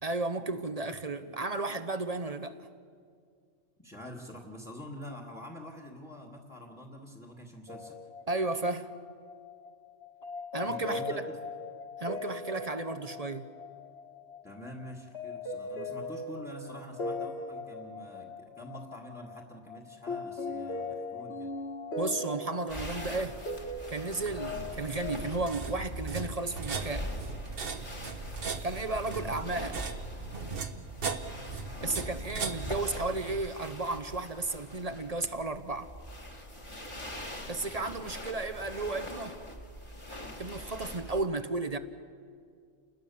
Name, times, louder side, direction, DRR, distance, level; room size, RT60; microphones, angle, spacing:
voice 1, 0.0-2.7 8.3-8.9 10.5-11.3 12.0-13.5 22.0-23.4 23.9-27.1 28.6-29.8 31.8-35.9 37.5-39.4 40.4-41.8, right 3 dB, 35° right, 0.9 m, -33 dB
voice 2, 3.8-8.0 10.6-11.2 14.4-21.5 29.1-29.4, left 1 dB, 10° left, 1.9 m, -46 dB
sound 1, 7.7-25.1, left 2 dB, 60° left, 1.9 m, -40 dB
sound 2, 22.7-41.3, left 1 dB, 25° left, 2.2 m, -43 dB
sound 3, 24.2-33.5, right 4 dB, 50° right, 1.3 m, -38 dB
29.5 x 20.5 x 7.0 m
omnidirectional pair, 1.2 m